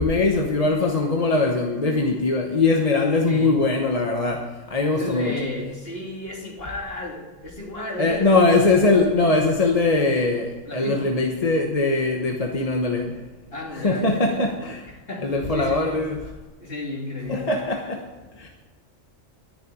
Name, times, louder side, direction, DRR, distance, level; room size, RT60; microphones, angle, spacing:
voice 1, 0.0-5.3 8.0-13.2 13.7-14.9 15.2-16.2 17.3-18.1 18.3-18.5, left 3 dB, 30° left, 2 dB, 1.1 m, -21 dB
voice 2, 3.3-3.6 4.9-8.3 10.7-11.1 13.5-14.5 14.9-16.0 16.6-17.6, left 2 dB, 50° left, -2 dB, 3.3 m, -33 dB
12.5 x 6.7 x 9.2 m, 1.2 s
omnidirectional pair, 1.3 m